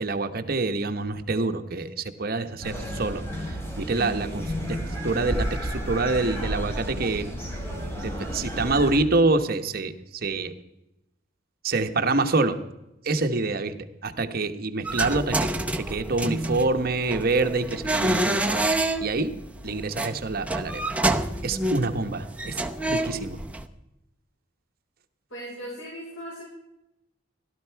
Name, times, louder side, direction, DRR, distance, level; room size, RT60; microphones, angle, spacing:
voice 1, 0.0-1.9 2.2-3.2 3.5-4.8 5.0-7.3 8.0-9.9 10.2-10.5 11.6-12.6 13.0-13.7 14.0-15.5 15.9-18.7 19.0-19.3 19.6-20.8 21.4-23.4, right 3 dB, 50° right, 8 dB, 1.0 m, -26 dB
sound 1, 2.6-9.0, equal, 15° left, 3.1 m, -32 dB
sound 2, 14.8-23.6, right 1 dB, 5° right, 0.7 m, -28 dB
voice 2, 25.3-26.4, equal, 85° left, -4 dB, 5.4 m, -38 dB
16.5 x 12.5 x 4.6 m, 0.91 s
head